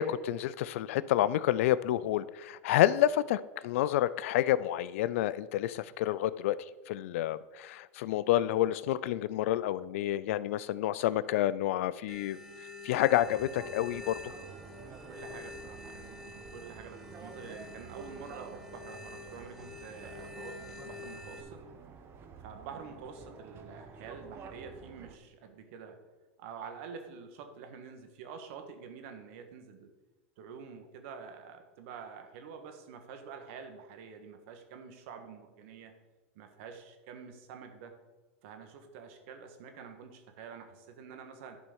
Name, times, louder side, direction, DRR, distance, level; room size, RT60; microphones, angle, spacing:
voice 1, 0.0-6.6 6.9-12.4 12.8-14.3, left 13 dB, 70° left, 17 dB, 0.4 m, -29 dB
sound 1, 12.1-21.4, left 3 dB, 5° right, 1.5 m, -47 dB
sound 2, 13.2-25.2, right 5 dB, 30° right, 0.9 m, -50 dB
voice 2, 15.1-21.6 22.4-26.0 26.4-29.9 30.4-35.9 36.3-37.9 38.4-41.6, right 6 dB, 65° right, 6 dB, 1.4 m, -47 dB
11.0 x 4.4 x 5.4 m, 1.2 s
supercardioid pair, 120°, 7 cm